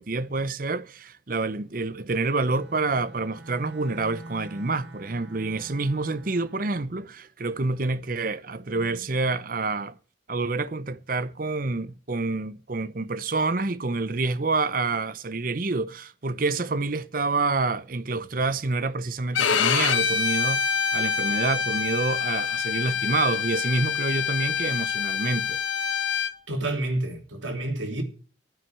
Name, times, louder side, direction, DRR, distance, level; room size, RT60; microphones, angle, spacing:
voice 1, 0.0-10.0 10.3-25.6, right 3 dB, 45° right, 0.8 m, -27 dB
Bowed string instrument, 2.3-6.8, right 1 dB, 65° right, 1.5 m, -45 dB
Bowed string instrument 2, 19.3-26.3, left 7 dB, 90° left, 1.2 m, -26 dB
voice 2, 26.5-28.0, right 1 dB, 85° right, 3.2 m, -29 dB
9.4 x 9.3 x 10.0 m
head